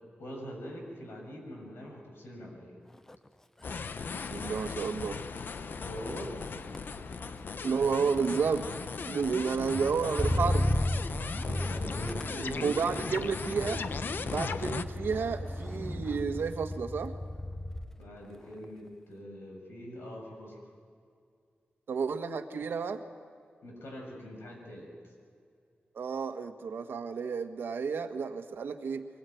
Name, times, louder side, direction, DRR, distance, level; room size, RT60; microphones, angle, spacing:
voice 1, 0.2-2.8 5.8-6.4 11.4-13.0 18.0-20.6 23.6-24.9, equal, 85° left, 1 dB, 7.0 m, -42 dB
Motor vehicle (road), 2.9-3.3 3.6-18.1 18.4-18.9, left 1 dB, 10° left, 0.6 m, -36 dB
sound 1, 3.6-14.8, left 5 dB, 60° left, 0.8 m, -38 dB
voice 2, 4.1-5.2 7.6-8.6 9.1-10.7 12.6-13.8 14.2-17.1 21.9-23.0 25.9-29.1, right 5 dB, 80° right, 6 dB, 1.6 m, -31 dB
23.5 x 21.0 x 9.4 m, 2.3 s
wide cardioid pair, 160°, 4 cm